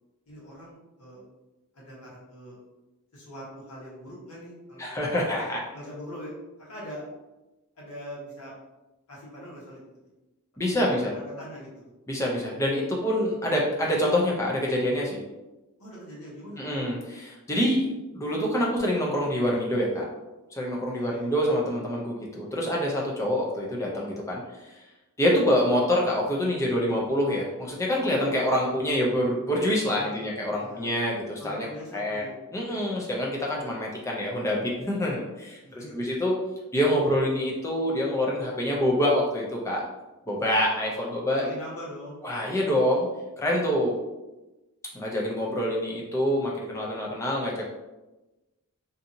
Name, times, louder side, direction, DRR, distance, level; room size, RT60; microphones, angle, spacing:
voice 1, 0.3-1.2 1.7-2.6 3.1-5.2 5.7-7.0 7.8-8.5 9.1-10.0 10.7-11.7 15.8-16.6 20.9-21.3 29.8-30.3 30.6-30.9 31.4-32.4 35.6-36.1 41.0-41.1 41.5-42.2, equal, 85° left, -6 dB, 1.2 m, -42 dB
voice 2, 4.8-5.6 10.6-11.1 12.1-15.2 16.6-17.9 18.1-20.0 20.5-24.8 25.2-31.7 31.9-32.2 32.5-36.3 36.7-39.8 40.3-41.5 42.2-43.1 43.4-44.0 44.9-47.7, equal, 15° left, -3 dB, 0.4 m, -26 dB
2.6 x 2.6 x 2.6 m, 1.1 s
head